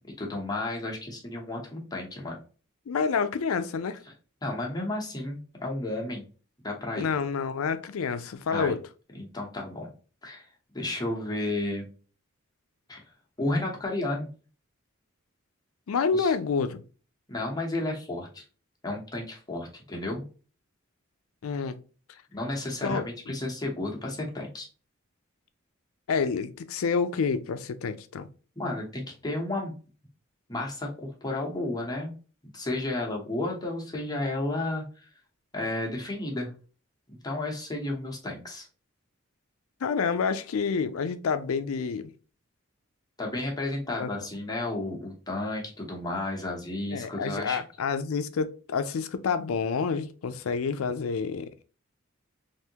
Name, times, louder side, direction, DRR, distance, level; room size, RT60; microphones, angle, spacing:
voice 1, 0.2-2.4 4.4-6.2 6.6-7.1 8.5-8.8 9.1-9.9 10.2-10.4 10.7-11.9 12.9-13.0 13.4-14.3 16.1-16.3 17.3-18.4 18.8-20.2 22.3-24.7 28.6-29.7 30.5-32.1 32.5-35.0 35.5-36.5 37.1-38.7 43.2-47.6, left 2 dB, 20° left, 0.9 m, -32 dB
voice 2, 2.9-4.0 7.0-8.8 15.9-16.8 21.4-21.8 22.8-23.4 26.1-28.3 39.8-42.1 44.0-44.1 46.9-51.5, left 5 dB, 75° left, 0.4 m, -28 dB
3.4 x 2.6 x 2.8 m
head